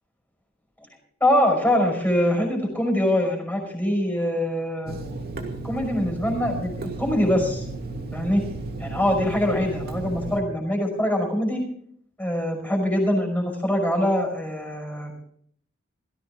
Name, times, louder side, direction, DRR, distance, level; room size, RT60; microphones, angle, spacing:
voice 1, 1.2-5.0 5.6-7.6 8.1-8.4 8.8-11.6 12.2-15.1, left 1 dB, 10° left, 2 dB, 5.6 m, -23 dB
Water tap faucet / Sink (filling or washing), 4.9-10.4, right 3 dB, 50° right, 2.5 m, -34 dB
17.5 x 15.5 x 3.8 m, 0.63 s
head